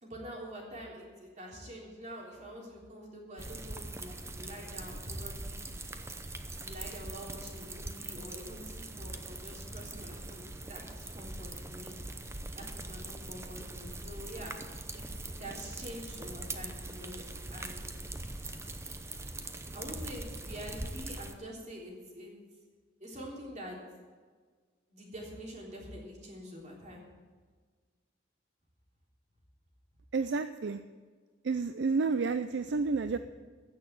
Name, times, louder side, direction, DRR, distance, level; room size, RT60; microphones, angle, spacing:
voice 1, 0.0-5.6 6.6-11.9 12.6-14.5 14.9-17.8 19.7-22.3 23.0-23.8 24.9-27.0, equal, 40° right, -2 dB, 3.5 m, -46 dB
sound 1, 3.4-21.3, right 2 dB, 15° right, 0.8 m, -42 dB
voice 2, 30.1-30.8 31.4-33.2, right 4 dB, 65° right, 11 dB, 0.4 m, -30 dB
15.5 x 6.6 x 9.0 m, 1.5 s
head